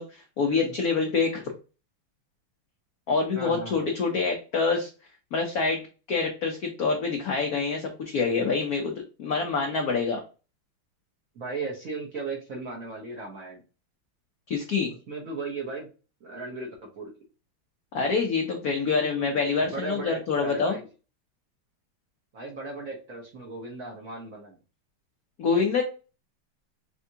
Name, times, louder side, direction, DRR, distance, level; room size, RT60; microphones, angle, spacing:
voice 1, 0.0-1.4 3.1-4.9 5.3-5.8 6.1-10.2 14.5-14.9 17.9-20.8 25.4-25.8, left 4 dB, 75° left, 3 dB, 0.8 m, -26 dB
voice 2, 3.3-3.8 11.3-13.6 15.1-15.9 16.2-17.1 18.9-19.3 19.7-20.9 22.3-24.6, right 3 dB, 55° right, -1 dB, 1.0 m, -36 dB
4.4 x 3.4 x 2.7 m, 0.33 s
omnidirectional pair, 2.4 m